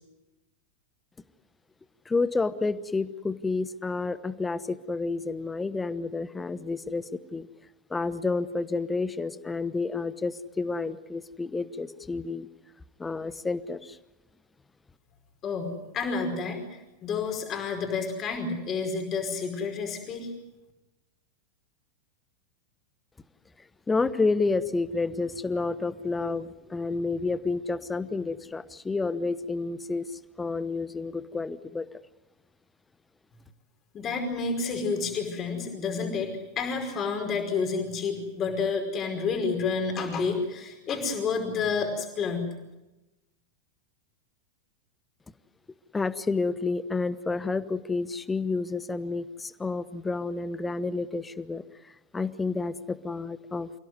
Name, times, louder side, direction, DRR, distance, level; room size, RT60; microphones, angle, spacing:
voice 1, 2.1-7.5 7.9-12.5 13.0-14.0 23.9-31.9 45.9-51.6 52.1-53.7, left 3 dB, 10° left, 16 dB, 1.0 m, -30 dB
voice 2, 15.4-20.3 33.9-42.5, left 4 dB, 30° left, 4 dB, 5.1 m, -30 dB
28.5 x 17.0 x 9.6 m, 0.99 s
figure-of-eight pair, 90°, 0 cm